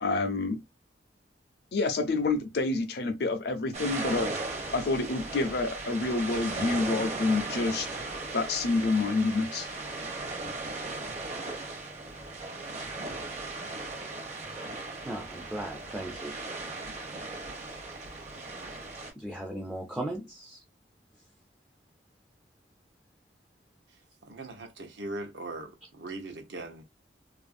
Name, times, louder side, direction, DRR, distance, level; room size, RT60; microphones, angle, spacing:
voice 1, 0.0-0.6 1.7-4.3 4.7-7.9 8.3-9.7, left 3 dB, 60° left, 0.5 m, -28 dB
sound 1, 3.7-19.1, right 3 dB, 40° right, 0.7 m, -37 dB
voice 2, 15.1-16.3 19.2-20.6, right 1 dB, 5° right, 0.3 m, -37 dB
voice 3, 24.2-26.8, right 2 dB, 75° right, 0.8 m, -40 dB
2.7 x 2.5 x 2.4 m
head